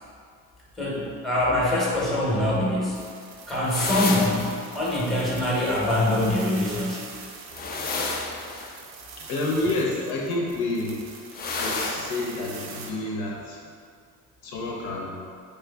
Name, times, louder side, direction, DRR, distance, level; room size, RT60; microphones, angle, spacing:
voice 1, 0.8-3.0 3.5-7.1, left 1 dB, ahead, -6 dB, 0.9 m, -24 dB
sound 1, 2.9-12.9, right 4 dB, 40° right, 0.5 m, -44 dB
sound 2, 3.7-4.6 7.5-8.8 11.3-12.2, left 3 dB, 25° left, 0.3 m, -30 dB
voice 2, 9.2-11.0 11.6-13.6 14.4-15.2, left 2 dB, 55° left, -3 dB, 0.7 m, -29 dB
3.3 x 3.1 x 2.3 m, 2.2 s
hypercardioid pair, 55°, 46 cm